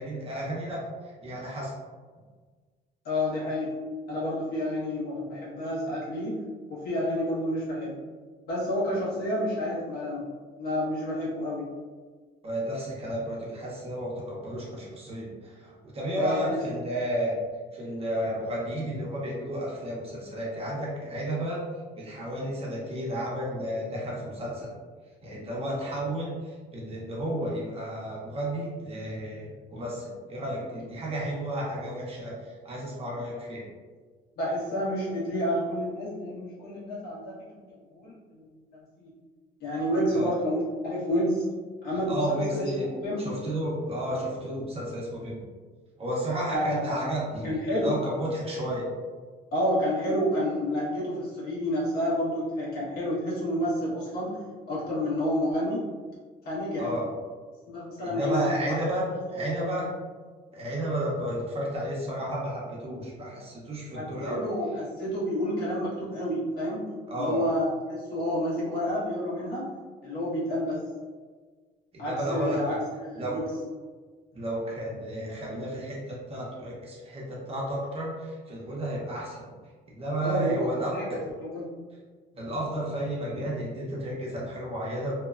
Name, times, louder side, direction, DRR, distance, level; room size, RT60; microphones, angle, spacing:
voice 1, 0.0-1.7 12.4-17.4 17.7-21.6 21.9-24.7 25.2-33.6 40.1-40.3 42.1-42.9 43.2-45.4 46.0-48.9 56.8-57.0 58.0-59.9 60.5-64.5 67.1-67.4 71.9-72.8 73.2-73.4 74.3-79.5 79.9-81.2 82.4-85.1, right 1 dB, 35° right, -4 dB, 0.8 m, -32 dB
voice 2, 3.0-3.7 4.1-6.4 6.7-8.0 8.5-10.3 10.6-11.7 16.1-16.4 34.4-37.4 37.7-39.1 39.6-41.4 41.8-43.2 46.5-46.8 47.4-47.9 49.5-54.4 54.7-55.8 56.4-56.9 57.7-58.8 59.1-59.7 63.9-66.8 67.1-69.7 70.0-70.8 72.0-73.5 80.2-81.7, equal, 65° left, -7 dB, 1.2 m, -29 dB
2.8 x 2.1 x 2.4 m, 1.5 s
cardioid pair, 110°, 17 cm